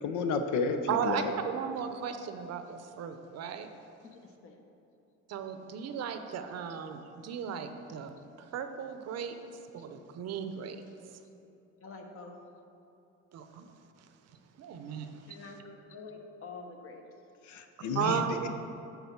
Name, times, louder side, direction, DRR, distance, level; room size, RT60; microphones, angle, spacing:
voice 1, 0.0-0.8 1.0-1.3 17.5-18.5, left 5 dB, 75° left, 7 dB, 0.7 m, -31 dB
voice 2, 0.9-3.7 5.3-9.4 9.7-10.8 13.3-13.7 14.0-14.1 14.6-15.5 17.9-18.5, right 7 dB, 55° right, 8 dB, 0.7 m, -35 dB
voice 3, 4.2-4.5 11.8-12.3 15.3-17.0, left 4 dB, 45° left, 3 dB, 1.1 m, -47 dB
9.5 x 4.0 x 5.8 m, 2.8 s
cardioid pair, 115°, 30 cm